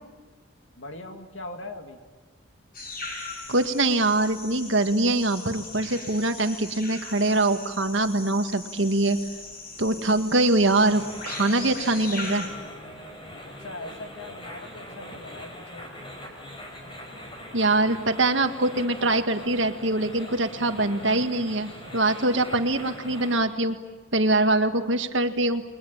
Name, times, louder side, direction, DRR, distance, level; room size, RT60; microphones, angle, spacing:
voice 1, 0.8-2.0 13.6-15.9, left 2 dB, 70° left, 5 dB, 2.7 m, -40 dB
sound 1, 2.7-12.5, left 2 dB, 45° left, 6.8 m, -39 dB
voice 2, 3.5-9.2 9.8-12.5 17.5-23.8 24.1-25.6, right 2 dB, 70° right, 7 dB, 1.8 m, -23 dB
sound 2, 10.7-23.4, equal, 25° left, 5.3 m, -42 dB
29.5 x 22.0 x 8.8 m, 1.3 s
head